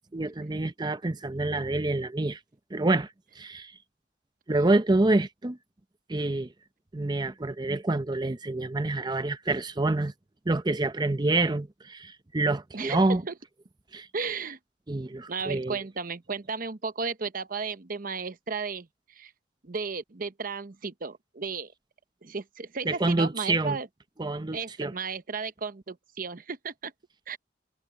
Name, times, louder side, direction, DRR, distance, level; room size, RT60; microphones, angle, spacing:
voice 1, 0.1-2.4 2.7-3.7 4.5-5.6 6.1-6.5 6.9-10.1 10.5-13.2 13.9-14.1 14.9-15.8 22.8-23.8 24.2-24.9, right 2 dB, 25° right, 0.7 m, -27 dB
voice 2, 12.7-13.3 14.1-14.6 15.3-19.3 19.6-21.7 22.2-23.9 24.5-26.9 27.3-27.4, right 5 dB, 50° right, 0.9 m, -34 dB
head